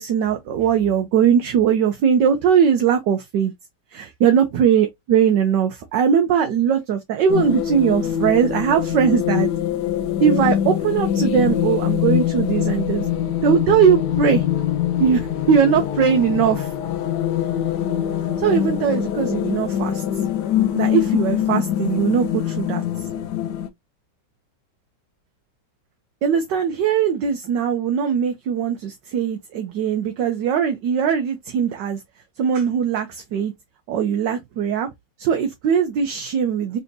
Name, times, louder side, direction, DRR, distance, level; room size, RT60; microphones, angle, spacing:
voice 1, 0.0-3.5 3.9-9.5 10.2-13.0 13.4-14.4 15.0-16.7 18.4-20.0 20.7-22.8 26.2-32.0 32.4-33.5 33.9-34.9 35.2-36.8, right 8 dB, 65° right, 1.3 m, -20 dB
sound 1, 7.3-23.7, left 11 dB, 65° left, 1.1 m, -23 dB
4.0 x 3.4 x 2.7 m
omnidirectional pair, 2.2 m